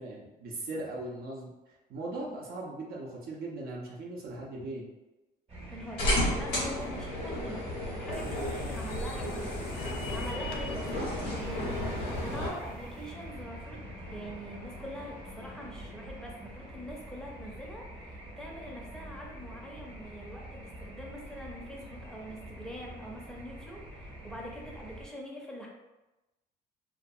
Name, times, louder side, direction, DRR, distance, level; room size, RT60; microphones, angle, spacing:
voice 1, 0.0-4.9, right 2 dB, 65° right, -3 dB, 0.6 m, -39 dB
sound 1, 5.5-25.1, right 1 dB, 35° right, 0.8 m, -45 dB
voice 2, 5.7-25.7, equal, 5° left, -2 dB, 0.5 m, -44 dB
sound 2, 6.0-12.5, left 1 dB, 85° left, 1.1 m, -33 dB
sound 3, 8.1-13.1, left 4 dB, 65° left, 0.4 m, -45 dB
2.5 x 2.3 x 2.6 m, 1.0 s
cardioid pair, 110°, 17 cm